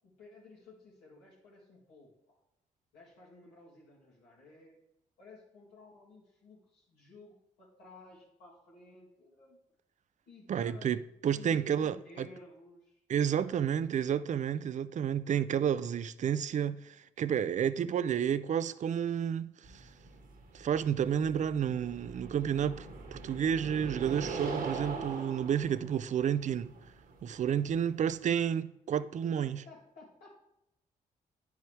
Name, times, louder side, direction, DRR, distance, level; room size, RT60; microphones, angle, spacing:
voice 1, 0.0-2.4 2.9-4.8 5.2-9.6 10.3-10.9 11.3-13.9 29.4-30.4, left 3 dB, 85° left, 2.3 m, -55 dB
voice 2, 10.5-12.3 13.1-19.9 20.5-26.7 27.2-29.6, right 8 dB, 45° right, 0.4 m, -31 dB
sound 1, 19.6-28.5, right 3 dB, 65° right, 1.3 m, -42 dB
10.0 x 4.6 x 3.3 m
hypercardioid pair, 40°, 17 cm